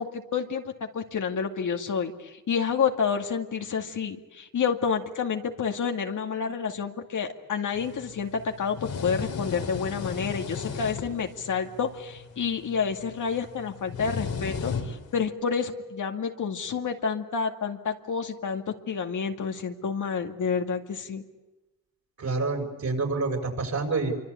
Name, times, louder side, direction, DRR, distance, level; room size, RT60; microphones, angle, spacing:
voice 1, 0.0-21.2, left 6 dB, 65° left, 4 dB, 2.3 m, -29 dB
sound 1, 7.8-15.2, left 5 dB, 85° left, 3.9 m, -36 dB
voice 2, 22.2-24.1, right 3 dB, 55° right, 3 dB, 6.8 m, -28 dB
27.0 x 25.0 x 8.5 m, 1.1 s
cardioid pair, 80°, 33 cm